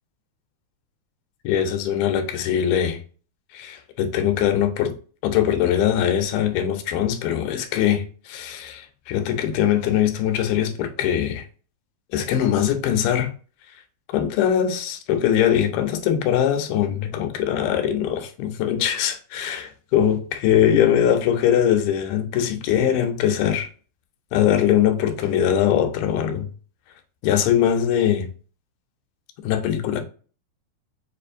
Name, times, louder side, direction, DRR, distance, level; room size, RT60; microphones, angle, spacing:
voice 1, 1.4-3.0 3.5-5.0 5.2-11.5 12.1-13.3 14.1-23.7 24.3-26.5 27.2-28.3 29.4-30.0, left 10 dB, 90° left, 2.5 m, -21 dB
6.9 x 2.5 x 2.6 m
omnidirectional pair, 4.2 m